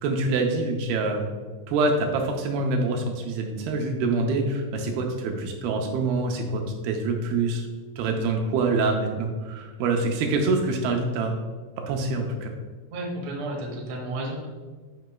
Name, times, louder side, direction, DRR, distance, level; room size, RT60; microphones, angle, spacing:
voice 1, 0.0-1.3 1.7-7.7 8.0-11.4 11.9-12.5, right 3 dB, 80° right, 2 dB, 2.6 m, -25 dB
voice 2, 12.9-14.5, right 1 dB, 60° right, -1 dB, 1.9 m, -32 dB
9.2 x 5.8 x 2.2 m, 1.4 s
omnidirectional pair, 4.5 m